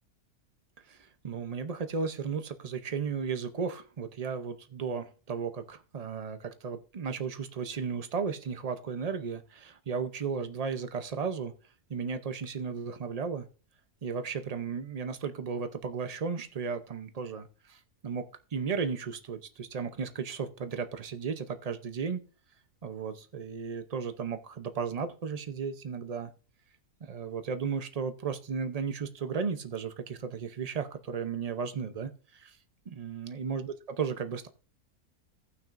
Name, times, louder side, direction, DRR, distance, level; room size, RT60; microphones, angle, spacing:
voice 1, 0.9-11.5 11.9-13.5 14.0-22.2 22.8-26.3 27.0-32.6 32.9-34.5, right 6 dB, 40° right, 9 dB, 0.5 m, -35 dB
17.5 x 6.0 x 2.5 m, 0.36 s
omnidirectional pair, 1.5 m